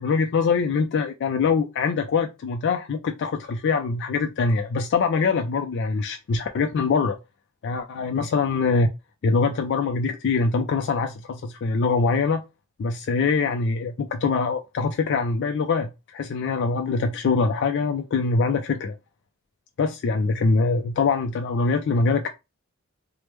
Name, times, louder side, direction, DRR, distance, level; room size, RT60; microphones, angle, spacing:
voice 1, 0.0-7.2 7.6-8.9 9.2-12.4 12.8-18.9 19.8-22.3, left 4 dB, 55° left, 0.3 m, -23 dB
3.2 x 2.1 x 3.0 m
head